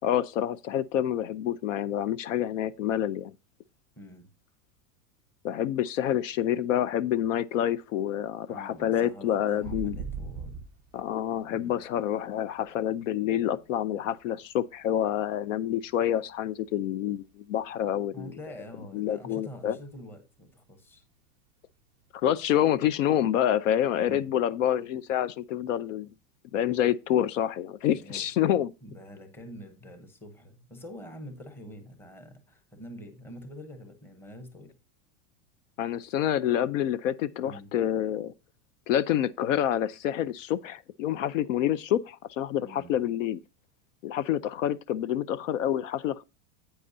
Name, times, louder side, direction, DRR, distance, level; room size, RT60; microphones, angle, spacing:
voice 1, 0.0-3.3 5.4-10.0 10.9-18.3 18.9-19.8 22.1-26.1 26.5-28.7 35.8-38.3 38.9-43.4 44.0-46.2, left 11 dB, 60° left, 0.6 m, -27 dB
voice 2, 4.0-4.3 8.5-10.6 11.5-11.8 18.1-21.0 24.0-24.4 27.9-28.3 28.8-34.7 37.4-37.7 42.6-43.0, equal, 5° left, 0.8 m, -46 dB
sound 1, 9.6-13.0 13.3-15.6 15.8-16.2 16.5-18.4 18.7-18.8 19.2-19.5 19.9-20.0 22.2-22.3, right 5 dB, 15° right, 0.3 m, -41 dB
10.5 x 8.8 x 2.6 m
supercardioid pair, 180°, 44 cm